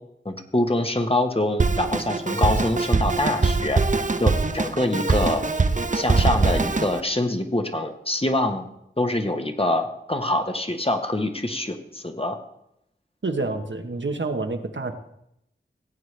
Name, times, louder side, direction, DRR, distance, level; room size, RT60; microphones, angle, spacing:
voice 1, 0.2-3.8 4.2-5.4 5.9-8.7 9.0-12.4, left 1 dB, 30° left, 5 dB, 1.2 m, -25 dB
Drum kit, 1.6-7.0, right 3 dB, 40° right, 0.7 m, -22 dB
voice 2, 13.2-14.9, right 3 dB, 65° right, 5 dB, 1.1 m, -28 dB
17.5 x 8.0 x 3.3 m, 0.78 s
wide cardioid pair, 50°, 20 cm